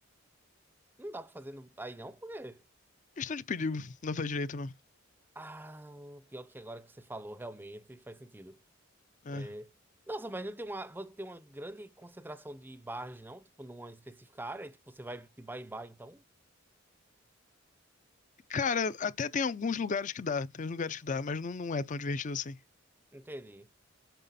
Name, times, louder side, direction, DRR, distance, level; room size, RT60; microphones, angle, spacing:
voice 1, 1.0-2.6 5.4-8.6 9.3-9.7 10.1-16.2 23.1-23.7, right 1 dB, 10° right, 0.6 m, -43 dB
voice 2, 3.2-4.7 9.2-9.5 18.5-22.6, left 4 dB, 40° left, 0.5 m, -33 dB
9.1 x 6.4 x 4.1 m
head